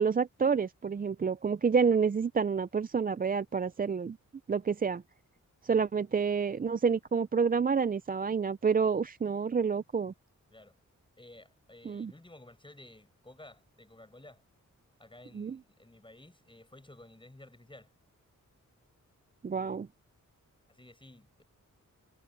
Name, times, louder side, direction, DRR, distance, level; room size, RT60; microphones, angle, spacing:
voice 1, 0.0-4.2 4.5-5.0 5.6-10.1 11.9-12.1 15.3-15.6 19.4-19.9, right 6 dB, 30° right, 0.4 m, -28 dB
voice 2, 11.2-14.4 15.0-17.9 20.7-21.4, left 1 dB, 15° left, 6.4 m, -54 dB
wide cardioid pair, 115°, 32 cm